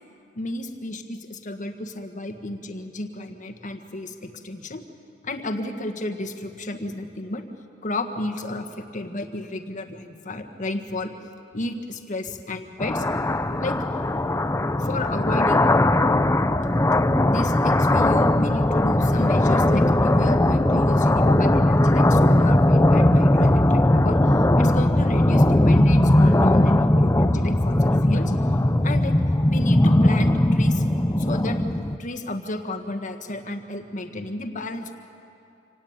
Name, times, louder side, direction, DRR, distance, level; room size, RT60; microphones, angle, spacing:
voice 1, 0.3-4.8 5.2-7.4 7.8-11.1 11.5-13.0 13.5-13.8 14.8-15.7 16.7-16.9 17.3-28.3 28.8-29.1 29.5-30.8 31.1-31.6 32.0-34.9, left 1 dB, 40° left, 7 dB, 1.6 m, -32 dB
sound 1, 12.8-32.0, left 1 dB, 15° left, 0.6 m, -19 dB
26.5 x 18.0 x 8.9 m, 2.6 s
head